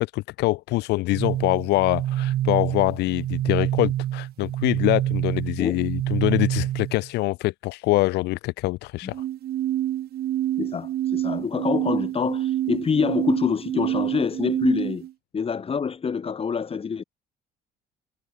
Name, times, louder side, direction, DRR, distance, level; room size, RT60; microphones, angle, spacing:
voice 1, 0.0-9.2, left 20 dB, 90° left, 2.5 m, -24 dB
sound 1, 1.1-7.1 9.1-15.1, right 13 dB, 65° right, 6.2 m, -27 dB
voice 2, 10.6-15.1 15.3-17.0, left 6 dB, 35° left, 7.5 m, -26 dB
cardioid pair, 110°, 17 cm